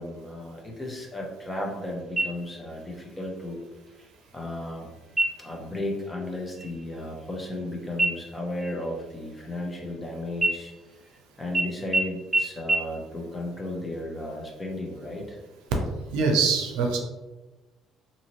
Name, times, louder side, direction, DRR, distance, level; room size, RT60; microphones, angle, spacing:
voice 1, 0.0-3.6 4.3-4.9 5.4-10.7 11.4-15.4, left 1 dB, 20° left, 0 dB, 0.9 m, -34 dB
sound 1, 2.2-2.8 3.2-3.3 3.9-4.4 5.1-5.6 6.0-6.3 6.6-7.7 8.0-10.0 10.4-11.2 11.5-11.6 11.9-12.0 12.3-12.4 12.7-12.8, right 2 dB, 20° right, 0.8 m, -28 dB
voice 2, 16.1-17.0, right 4 dB, 80° right, 2 dB, 0.5 m, -23 dB
2.8 x 2.7 x 2.8 m, 1.1 s
hypercardioid pair, 60°, 0 cm